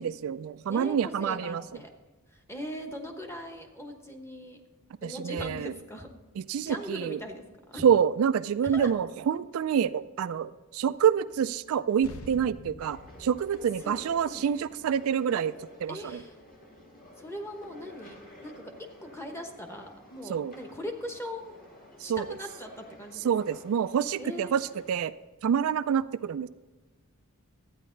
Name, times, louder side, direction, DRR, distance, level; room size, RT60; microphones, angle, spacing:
voice 1, 0.0-1.6 5.0-5.7 6.5-7.2 7.8-15.5 15.8-16.0 20.3-20.5 22.0-22.3 23.2-24.6 24.9-25.1 25.4-26.5, right 8 dB, 65° right, 13 dB, 0.3 m, -27 dB
voice 2, 0.7-1.9 2.3-4.6 5.0-6.1 6.6-7.8 8.6-8.9 13.5-14.5 15.9-16.3 17.2-18.7 19.0-21.6 22.0-23.6 24.2-24.5, equal, 10° left, 4 dB, 1.1 m, -40 dB
sound 1, 12.0-16.8, left 2 dB, 70° left, 0.9 m, -49 dB
sound 2, 12.8-24.9, left 1 dB, 40° left, 2.1 m, -52 dB
12.5 x 9.3 x 3.9 m, 1.3 s
head